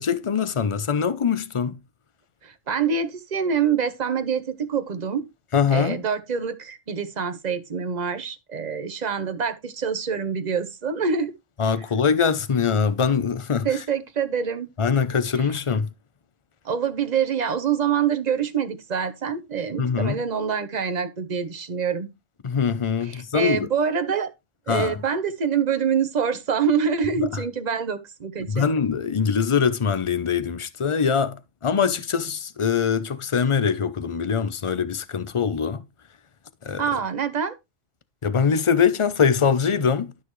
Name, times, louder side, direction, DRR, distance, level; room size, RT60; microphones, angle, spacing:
voice 1, 0.0-1.8 5.5-6.0 11.6-13.7 14.8-15.9 19.8-20.2 22.4-23.7 24.7-25.0 28.5-35.8 36.6-36.8 38.2-40.1, left 6 dB, 35° left, 0.6 m, -23 dB
voice 2, 2.4-5.3 5.7-11.3 13.6-14.7 16.6-22.1 23.0-24.3 24.7-28.7 36.8-37.6, right 6 dB, 35° right, 1.0 m, -25 dB
12.0 x 6.3 x 3.2 m
omnidirectional pair, 1.3 m